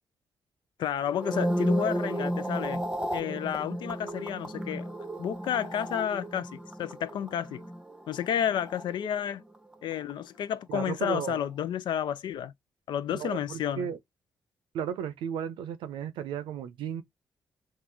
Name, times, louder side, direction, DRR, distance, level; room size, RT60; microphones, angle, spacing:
voice 1, 0.8-2.8 3.1-4.9 5.2-7.6 8.1-9.4 9.8-12.5 12.9-13.9, left 9 dB, 75° left, 0.4 m, -31 dB
sound 1, 1.1-9.5 9.7-10.1, right 1 dB, 10° right, 0.8 m, -33 dB
voice 2, 10.7-11.4 13.1-14.0 14.7-17.0, right 8 dB, 85° right, 0.6 m, -34 dB
3.8 x 2.4 x 4.6 m
supercardioid pair, 60°, 8 cm